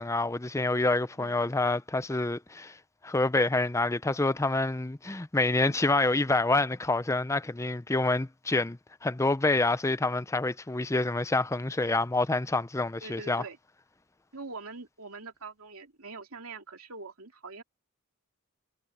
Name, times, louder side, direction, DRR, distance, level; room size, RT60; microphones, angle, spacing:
voice 1, 0.0-2.8 3.0-13.4, left 2 dB, 15° left, 0.5 m, -27 dB
voice 2, 1.2-1.5 5.5-5.8 13.0-13.6 14.3-17.6, right 3 dB, 75° right, 2.8 m, -44 dB
head